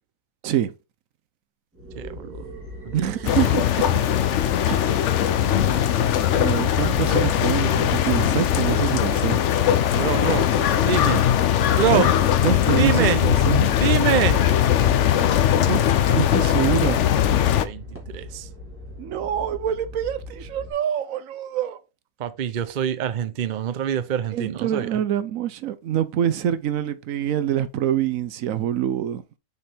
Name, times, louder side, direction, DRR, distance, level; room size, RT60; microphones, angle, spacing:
sound 1, 1.7-20.7, equal, 10° right, 2.2 m, -39 dB
voice 1, 2.0-2.4 2.9-3.0 9.9-10.5 10.8-11.3 11.7-12.1 12.7-13.2 13.8-14.4 17.6-18.5 22.2-25.0, right 9 dB, 50° right, 0.5 m, -25 dB
voice 2, 2.9-4.0 4.7-5.0 6.3-9.4 11.9-12.0 12.4-13.7 15.1-15.3 15.6-17.0 19.0-21.8 24.3-29.2, right 10 dB, 75° right, 1.0 m, -26 dB
sound 2, 3.2-17.6, left 10 dB, 65° left, 0.9 m, -20 dB
6.6 x 4.4 x 3.4 m
omnidirectional pair, 1.5 m